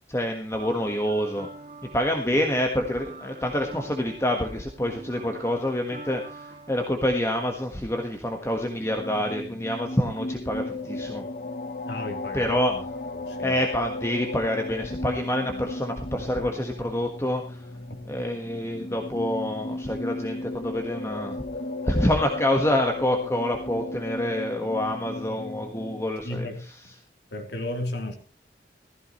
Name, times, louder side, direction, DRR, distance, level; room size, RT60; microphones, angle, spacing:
voice 1, 0.1-1.5 1.8-11.2 12.3-12.7 13.4-17.6 18.1-21.4 21.8-26.5, left 1 dB, 15° left, 3 dB, 1.4 m, -27 dB
sound 1, 0.6-6.9, right 2 dB, 40° right, 2.0 m, -44 dB
sound 2, 8.7-26.0, left 2 dB, 50° left, 0.9 m, -35 dB
voice 2, 11.9-12.8 13.1-13.6 26.2-26.6 27.3-28.2, left 1 dB, 80° left, 3 dB, 3.4 m, -34 dB
15.5 x 15.5 x 3.1 m, 0.35 s
head